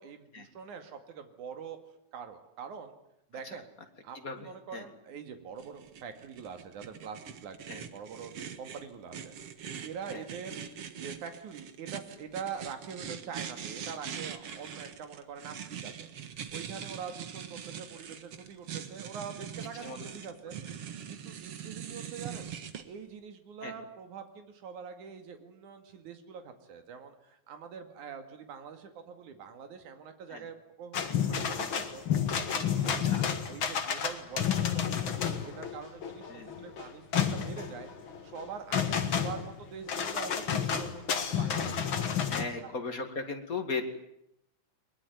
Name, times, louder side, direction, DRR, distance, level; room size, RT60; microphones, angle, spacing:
voice 1, 0.0-1.8 2.1-2.9 3.3-3.7 4.0-9.3 9.8-10.6 11.0-22.5 22.9-33.1 33.5-42.2 42.6-42.7, right 6 dB, 75° right, 7 dB, 3.6 m, -44 dB
sound 1, 5.6-22.8, right 8 dB, 55° right, 2.2 m, -42 dB
sound 2, 30.9-42.4, left 8 dB, 45° left, 2.2 m, -31 dB
voice 2, 32.8-33.3 36.3-36.5 42.3-43.8, left 4 dB, 30° left, 6 dB, 2.4 m, -37 dB
22.0 x 21.0 x 9.4 m, 0.80 s
omnidirectional pair, 3.6 m